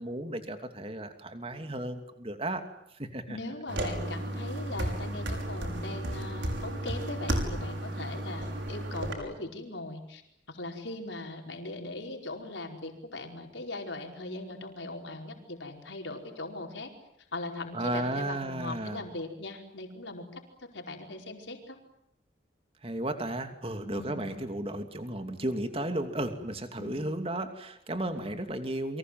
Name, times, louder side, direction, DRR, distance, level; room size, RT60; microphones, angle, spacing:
voice 1, 0.0-2.6 2.9-3.2 17.7-19.1 22.8-29.0, right 1 dB, 30° right, 7 dB, 2.8 m, -34 dB
voice 2, 3.3-10.2 10.5-16.9 17.3-21.8 23.9-24.2 26.8-27.0, left 2 dB, 80° left, 3 dB, 4.9 m, -40 dB
sound 1, 3.7-9.1, right 1 dB, 80° right, 6.1 m, -33 dB
29.5 x 24.5 x 7.7 m, 0.75 s
head